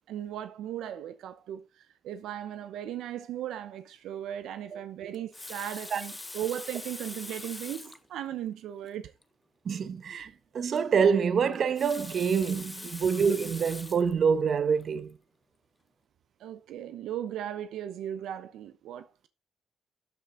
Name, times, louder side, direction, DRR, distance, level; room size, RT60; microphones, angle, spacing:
voice 1, 0.1-9.1 16.4-19.3, right 11 dB, 80° right, 0.8 m, -37 dB
Water tap faucet, 5.1-8.1 8.8-8.9 9.2-9.3 11.5-14.1 14.8-15.0, left 2 dB, 15° left, 0.9 m, -43 dB
voice 2, 9.6-10.3 10.5-15.1, right 6 dB, 55° right, 1.1 m, -26 dB
13.0 x 5.9 x 3.9 m
cardioid pair, 90°, 0 cm